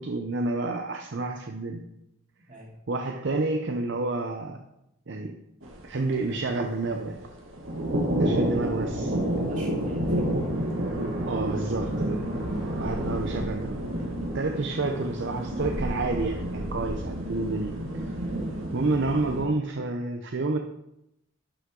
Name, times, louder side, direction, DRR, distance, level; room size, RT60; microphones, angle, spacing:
voice 1, 0.0-1.9 2.9-4.6 5.1-5.4 5.8-7.2 8.2-9.2 11.3-12.3 12.7-13.9 14.3-17.8 18.7-20.6, right 3 dB, 60° right, 4 dB, 0.6 m, -29 dB
voice 2, 2.5-2.8 9.4-10.6 12.6-13.0, right 1 dB, 40° right, -3 dB, 2.6 m, -43 dB
sound 1, 5.6-19.4, right 1 dB, 80° right, 1.8 m, -30 dB
11.0 x 5.8 x 3.8 m, 0.83 s
head